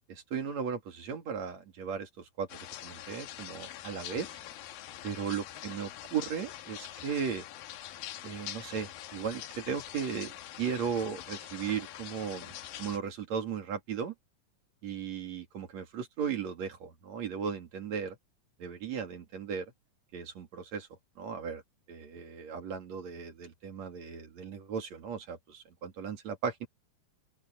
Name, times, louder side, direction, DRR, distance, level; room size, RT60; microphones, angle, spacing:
voice 1, 0.0-2.5 2.8-4.4 5.0-7.4 8.2-14.1 14.8-18.2 18.6-19.7 20.1-20.9 21.2-21.6 21.9-26.7, right 7 dB, 55° right, 3.4 m, -36 dB
sound 1, 2.5-13.0, left 12 dB, 85° left, 3.0 m, -44 dB
open air
omnidirectional pair, 4.0 m